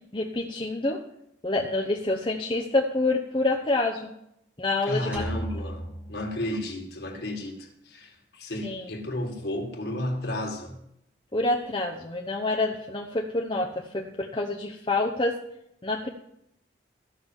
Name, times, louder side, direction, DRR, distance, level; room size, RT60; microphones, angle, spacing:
voice 1, 0.1-1.0 1.4-4.1 4.6-5.5 8.6-8.8 11.3-15.4 15.8-16.1, left 2 dB, 25° left, 0.8 m, -27 dB
voice 2, 4.9-10.8, left 1 dB, 55° left, 2.0 m, -33 dB
sound 1, 5.1-7.0, right 1 dB, 5° right, 1.5 m, -36 dB
14.0 x 6.2 x 7.2 m
head